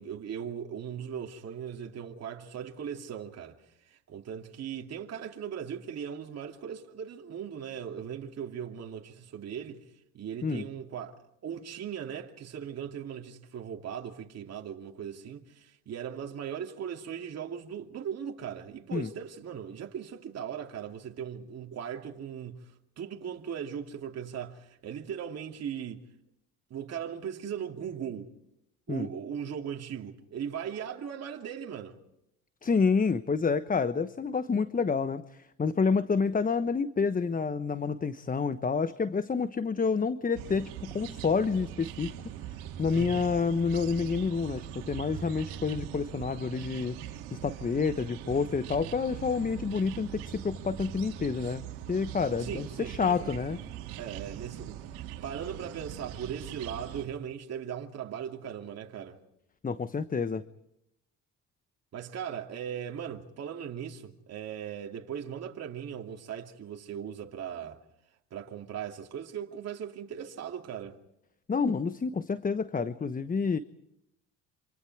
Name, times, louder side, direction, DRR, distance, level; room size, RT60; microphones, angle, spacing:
voice 1, 0.0-3.6 3.8-26.0 26.7-28.3 28.9-32.0 42.9-43.3 52.4-53.3 54.0-59.2 61.9-67.8 68.3-71.0, right 8 dB, 50° right, 2.7 m, -39 dB
voice 2, 32.6-42.3 42.8-47.0 47.3-53.6 59.6-60.4 71.5-73.6, left 5 dB, 25° left, 1.1 m, -29 dB
sound 1, 40.3-57.1, right 11 dB, 85° right, 2.3 m, -41 dB
27.5 x 27.0 x 4.8 m
supercardioid pair, 70°, 32 cm